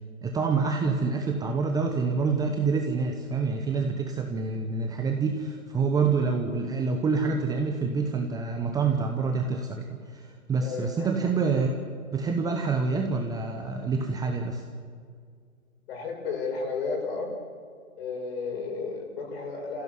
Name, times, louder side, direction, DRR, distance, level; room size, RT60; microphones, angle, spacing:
voice 1, 0.2-11.8 12.1-14.6, right 4 dB, 10° right, 3 dB, 1.0 m, -27 dB
voice 2, 10.6-11.1 15.9-17.3 18.0-19.8, left 4 dB, 45° left, 2 dB, 6.2 m, -33 dB
28.0 x 15.5 x 7.9 m, 2.1 s
hypercardioid pair, 135°, 42 cm